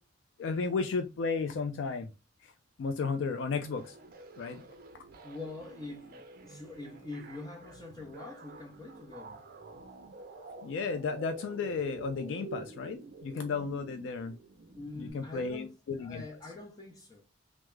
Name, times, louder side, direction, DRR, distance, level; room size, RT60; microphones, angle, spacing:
voice 1, 0.4-2.1 2.4-2.5 2.8-3.9 4.4-4.6 10.6-14.4 15.0-16.2, left 4 dB, 85° left, 0.3 m, -33 dB
sound 1, 3.5-15.1, right 3 dB, 50° right, 0.5 m, -48 dB
voice 2, 5.2-9.4 14.7-17.2, left 3 dB, 20° left, 0.6 m, -44 dB
3.4 x 2.0 x 3.1 m
head